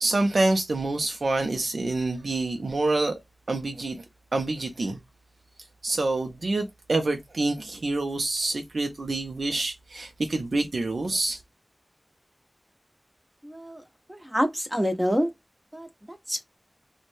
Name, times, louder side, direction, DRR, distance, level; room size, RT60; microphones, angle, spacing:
voice 1, 0.0-3.1 3.5-4.0 4.3-5.0 5.8-11.4, right 2 dB, 80° right, 0.5 m, -27 dB
voice 2, 13.4-13.8 14.1-15.3 15.7-16.4, equal, 15° right, 0.8 m, -27 dB
3.0 x 2.1 x 2.5 m
wide cardioid pair, 45°, 0 cm